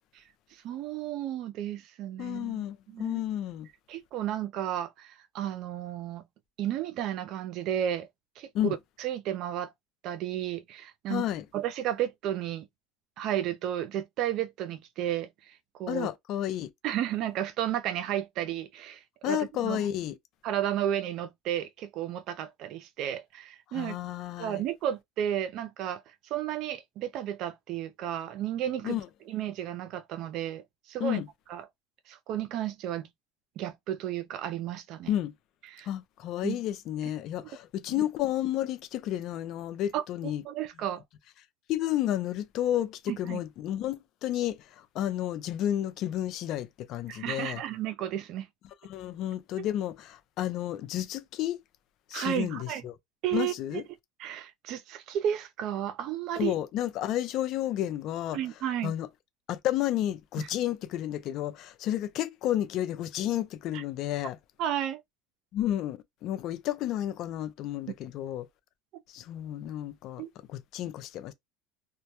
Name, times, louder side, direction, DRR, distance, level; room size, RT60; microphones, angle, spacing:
voice 1, 0.6-3.2 3.9-6.2 6.6-8.1 8.4-9.7 10.0-11.3 11.5-12.7 13.2-16.1 16.8-19.9 20.4-24.0 24.4-26.0 26.3-29.0 29.3-31.2 31.5-31.7 32.1-33.1 33.6-35.1 35.7-35.9 36.4-36.6 38.0-38.1 39.9-41.0 43.1-43.4 47.1-48.5 49.6-49.7 52.1-52.8 53.2-53.8 54.2-56.5 58.3-58.9 60.4-60.5 63.7-63.8 64.6-65.0 70.2-70.3, right 11 dB, 55° right, 0.4 m, -33 dB
voice 2, 2.2-3.7 8.5-8.8 11.1-11.4 15.9-16.7 19.2-20.1 23.7-24.6 28.8-29.0 31.0-31.3 35.1-35.3 35.9-40.4 41.7-44.6 44.9-47.6 48.9-51.6 52.1-52.9 53.3-53.8 56.4-58.4 58.8-59.1 59.5-64.4 65.5-68.5 69.1-70.2 70.5-71.3, left 12 dB, 50° left, 0.5 m, -31 dB
2.1 x 2.0 x 2.9 m
supercardioid pair, 115°, 0 cm